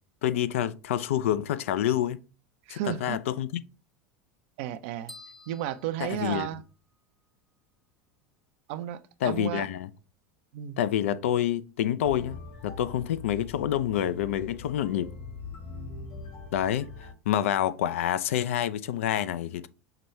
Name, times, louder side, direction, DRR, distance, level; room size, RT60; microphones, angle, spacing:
voice 1, 0.2-2.2 2.7-3.6 6.0-6.5 9.2-9.9 10.8-15.1 16.5-19.7, left 11 dB, 70° left, 0.3 m, -28 dB
voice 2, 2.7-3.2 4.6-5.1 5.5-6.6 8.7-9.7 10.5-10.8, right 12 dB, 60° right, 0.4 m, -33 dB
sound 1, 5.1-7.0, left 1 dB, 5° left, 0.6 m, -50 dB
sound 2, 12.0-17.1, left 4 dB, 50° left, 1.7 m, -42 dB
5.7 x 2.2 x 3.1 m
hypercardioid pair, 80°, 7 cm